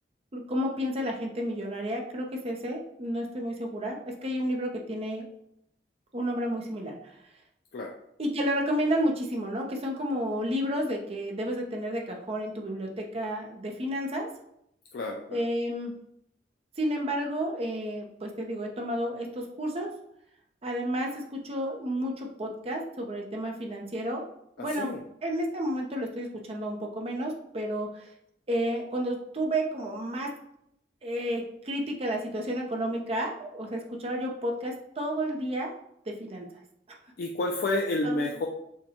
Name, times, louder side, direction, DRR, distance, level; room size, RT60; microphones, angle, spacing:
voice 1, 0.3-5.3 6.1-7.1 8.2-14.3 15.3-16.0 16.8-19.9 20.6-24.2 24.6-24.9 25.2-28.1 28.5-30.3 31.0-35.7 36.1-36.5 38.0-38.4, equal, 35° right, 1 dB, 0.7 m, -31 dB
voice 2, 14.9-15.4 24.6-25.0 37.2-38.5, left 2 dB, 60° left, 1 dB, 0.4 m, -30 dB
6.5 x 2.2 x 2.9 m, 0.77 s
head